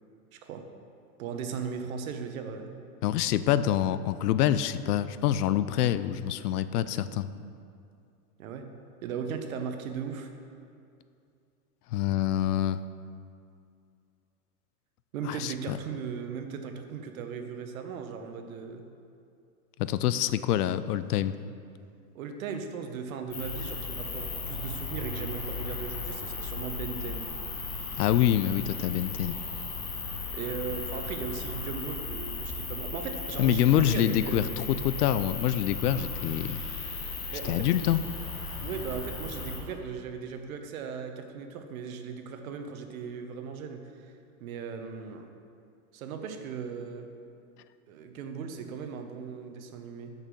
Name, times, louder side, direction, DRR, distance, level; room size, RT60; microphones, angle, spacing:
voice 1, 0.3-0.6 1.2-2.8 8.4-8.7 9.0-10.3 15.1-18.8 22.1-27.3 30.3-34.5 37.3-38.0 38.6-44.1 44.4-45.3 45.9-47.1 47.9-50.1, right 6 dB, 60° right, 6 dB, 1.0 m, -37 dB
voice 2, 3.0-7.3 11.9-12.8 15.3-15.8 19.8-21.3 28.0-29.4 33.4-36.6 37.4-38.0, left 11 dB, 75° left, 14 dB, 0.5 m, -26 dB
sound 1, 23.3-39.6, left 4 dB, 25° left, 1.4 m, -36 dB
6.6 x 5.9 x 6.2 m, 2.4 s
supercardioid pair, 150°, 47 cm